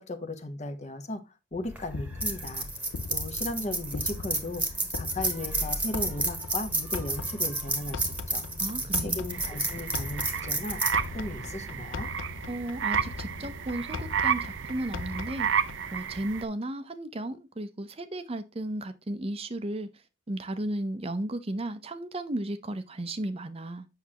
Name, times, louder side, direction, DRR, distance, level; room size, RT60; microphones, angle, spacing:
voice 1, 0.0-8.4 9.0-12.1, left 2 dB, 35° left, 0.9 m, -37 dB
sound 1, 1.5-15.9, left 4 dB, 85° left, 0.6 m, -40 dB
sound 2, 1.7-12.1, right 2 dB, 5° right, 1.2 m, -32 dB
voice 2, 8.6-9.2 12.5-15.5 15.9-19.9 20.3-23.9, right 1 dB, 30° right, 0.6 m, -34 dB
sound 3, 9.3-16.4, right 7 dB, 75° right, 0.6 m, -32 dB
8.2 x 6.0 x 2.9 m
head